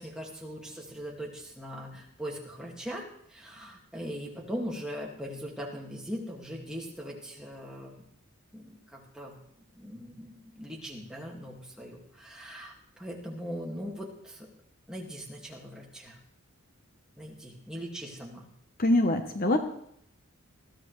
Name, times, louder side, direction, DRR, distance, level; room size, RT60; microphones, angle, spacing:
voice 1, 0.0-3.0 3.3-8.0 8.5-9.3 9.7-14.5 14.9-16.2 17.2-18.4, equal, 5° right, -2 dB, 2.0 m, -40 dB
voice 2, 18.8-19.6, left 1 dB, 40° left, 6 dB, 0.9 m, -24 dB
20.5 x 13.5 x 3.2 m, 0.70 s
head